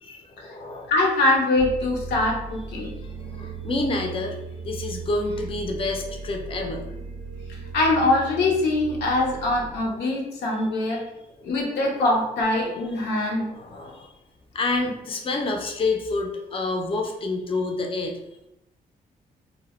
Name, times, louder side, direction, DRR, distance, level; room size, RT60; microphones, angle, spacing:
voice 1, 0.0-0.9 3.0-4.4 4.6-6.9 10.8-11.0 12.5-12.6 13.4-14.1 14.5-18.2, left 3 dB, 35° left, 3 dB, 0.4 m, -28 dB
voice 2, 0.9-2.9 7.5-11.0 11.4-13.5, left 2 dB, 90° left, -1 dB, 0.6 m, -23 dB
sound 1, 1.6-9.7, right 5 dB, 60° right, 0.4 m, -37 dB
2.1 x 2.0 x 2.9 m, 0.87 s
cardioid pair, 70°, 17 cm